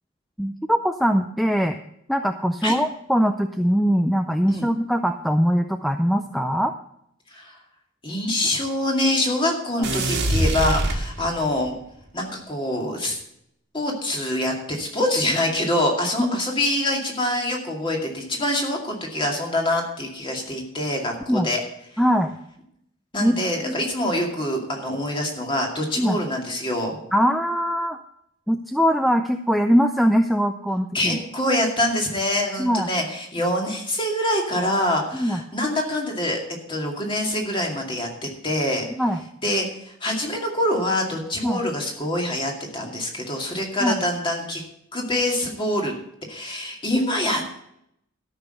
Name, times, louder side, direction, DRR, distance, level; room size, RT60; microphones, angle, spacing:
voice 1, 0.4-1.8 2.1-6.7 16.2-16.3 21.3-21.5 22.0-22.3 23.2-23.3 23.6-23.7 26.0-26.2 27.1-28.0 28.5-31.2 32.6-32.9 35.2-35.4 39.0-39.2 41.4-41.6 43.8-44.0, equal, ahead, 7 dB, 0.4 m, -21 dB
voice 2, 8.0-11.7 12.1-13.2 13.7-21.6 23.1-27.0 30.9-36.4 36.7-38.8 39.4-44.6 44.9-45.9 46.3-47.6, left 1 dB, 25° left, 1 dB, 2.3 m, -25 dB
sound 1, 9.8-11.6, right 1 dB, 55° right, 1.7 m, -24 dB
13.0 x 6.1 x 6.6 m, 0.75 s
head